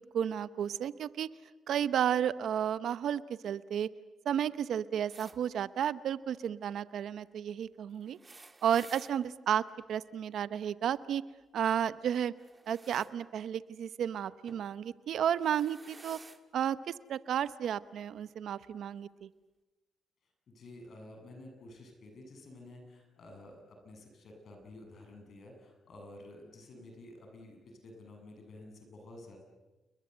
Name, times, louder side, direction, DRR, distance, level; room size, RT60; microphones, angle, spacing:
voice 1, 0.1-1.3 1.7-3.9 4.2-8.2 8.6-11.2 11.5-12.3 12.7-16.2 16.5-19.3, right 9 dB, 70° right, 15 dB, 0.8 m, -32 dB
sound 1, 5.1-5.4 8.0-9.1 12.3-13.1 14.5-14.7 15.3-16.4 17.4-17.5 18.7-18.8, right 3 dB, 25° right, 1.9 m, -53 dB
voice 2, 20.5-29.4, left 1 dB, 60° left, 3 dB, 7.7 m, -51 dB
29.5 x 22.0 x 8.1 m, 1.2 s
cardioid pair, 75°, 0 cm